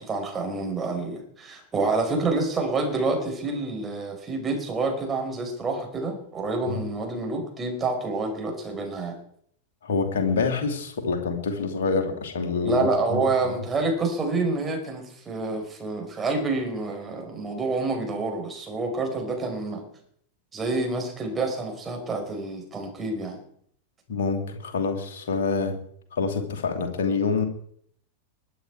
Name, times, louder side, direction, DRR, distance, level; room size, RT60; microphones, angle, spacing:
voice 1, 0.0-9.1 12.6-19.8 20.5-23.4, right 3 dB, 20° right, 2 dB, 4.9 m, -28 dB
voice 2, 9.8-13.6 24.1-25.7 26.1-27.5, left 4 dB, 60° left, 3 dB, 2.8 m, -26 dB
22.0 x 9.3 x 4.6 m, 0.63 s
figure-of-eight pair, 90°, 0 cm